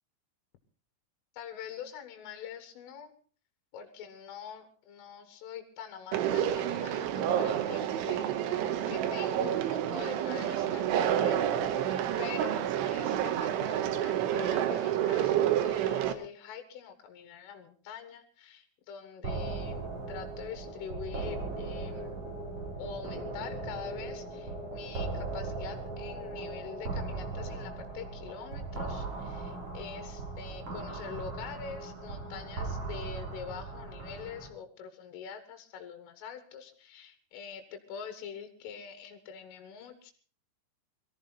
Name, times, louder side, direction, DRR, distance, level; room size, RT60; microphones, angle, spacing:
voice 1, 1.3-3.1 3.7-8.5 8.9-19.8 20.1-22.1 22.8-40.1, left 7 dB, 85° left, 7 dB, 4.0 m, -44 dB
Conversation, 6.1-16.1, right 10 dB, 80° right, 3.5 m, -29 dB
sound 1, 19.2-34.5, right 3 dB, 30° right, 4.4 m, -38 dB
22.0 x 14.5 x 4.0 m, 0.41 s
omnidirectional pair, 5.6 m